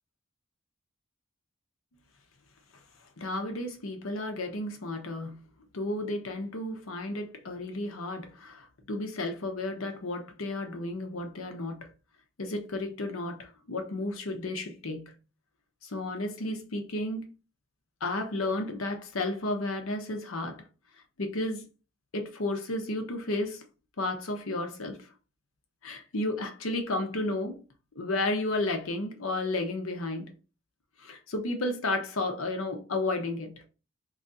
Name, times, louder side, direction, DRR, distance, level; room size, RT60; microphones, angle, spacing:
voice 1, 3.2-5.4 5.7-11.8 12.4-15.1 15.8-17.3 18.0-20.6 21.2-21.7 22.1-23.6 24.0-25.0 25.8-27.6 28.0-30.3 31.0-33.6, left 2 dB, 80° left, 0.8 m, -32 dB
3.1 x 2.5 x 3.9 m
head